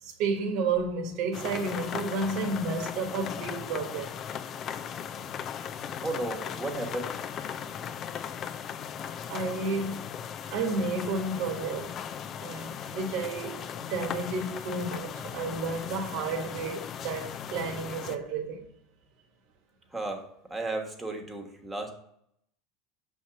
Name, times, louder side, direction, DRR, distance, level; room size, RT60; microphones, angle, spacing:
voice 1, 0.0-4.2 9.3-10.2 10.5-12.0 12.4-18.7, right 3 dB, 60° right, 1.1 m, -31 dB
sound 1, 1.3-18.2, left 8 dB, 45° left, 0.4 m, -38 dB
voice 2, 6.0-7.1 7.7-7.9 10.4-10.6 19.9-20.2 20.5-21.9, right 2 dB, 15° right, 1.3 m, -34 dB
6.4 x 2.8 x 5.7 m
hypercardioid pair, 90°, 0 cm